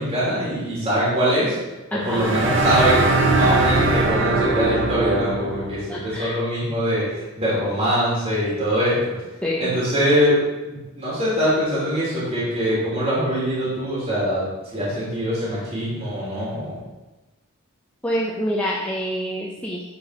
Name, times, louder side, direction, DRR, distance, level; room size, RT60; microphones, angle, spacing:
voice 1, 0.0-1.6 1.9-9.1 9.6-10.4 10.6-14.4 14.7-16.7, equal, 30° right, -8 dB, 2.8 m, -23 dB
voice 2, 1.9-2.4 5.9-6.4 9.4-9.7 18.0-19.8, equal, 5° left, -5 dB, 0.8 m, -26 dB
sound 1, 2.0-5.8, right 2 dB, 55° right, 1.2 m, -21 dB
9.5 x 4.7 x 5.0 m, 1.1 s
head